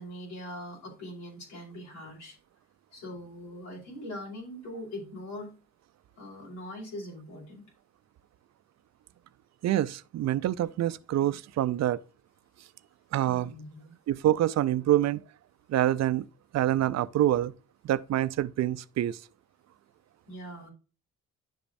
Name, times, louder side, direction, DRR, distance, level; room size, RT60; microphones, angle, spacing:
voice 1, 0.0-2.4 2.9-5.6 6.2-7.6 13.2-13.9 20.3-20.7, equal, 80° left, 5.3 m, -42 dB
voice 2, 9.6-12.0 13.1-13.5 14.1-15.2 15.7-16.2 16.5-17.5 17.8-19.2, right 13 dB, 60° right, 0.5 m, -26 dB
10.5 x 7.0 x 2.6 m
cardioid pair, 90°, 30 cm